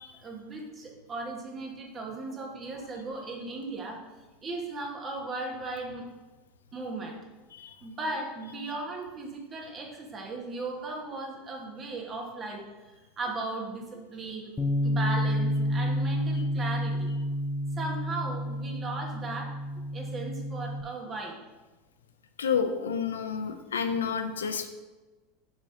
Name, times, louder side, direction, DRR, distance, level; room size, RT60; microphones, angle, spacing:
voice 1, 0.2-4.0 4.4-6.0 6.7-7.2 7.8-12.6 13.2-14.5 14.8-17.1 17.8-21.4, right 2 dB, 30° right, 0 dB, 1.5 m, -37 dB
Bass guitar, 14.6-20.8, equal, 15° left, 0.7 m, -29 dB
voice 2, 22.4-24.7, left 6 dB, 80° left, 7 dB, 0.6 m, -29 dB
5.2 x 4.1 x 4.9 m, 1.2 s
hypercardioid pair, 85°, 0 cm